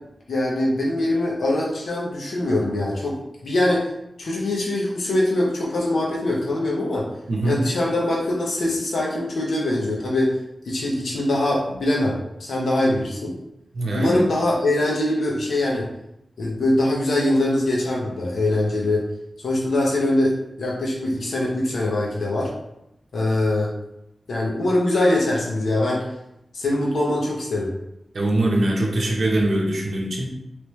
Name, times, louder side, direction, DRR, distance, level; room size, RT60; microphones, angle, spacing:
voice 1, 0.3-3.2 3.4-3.9 4.2-7.1 7.4-10.3 10.6-13.3 13.9-15.9 16.4-19.0 19.4-22.5 23.1-23.7 24.3-26.0 26.5-27.7, left 1 dB, 80° left, -4 dB, 0.8 m, -22 dB
voice 2, 7.3-7.6 13.7-14.2 28.1-30.3, right 1 dB, 65° right, -1 dB, 0.8 m, -22 dB
3.1 x 3.1 x 3.2 m, 0.84 s
wide cardioid pair, 85°, 0 cm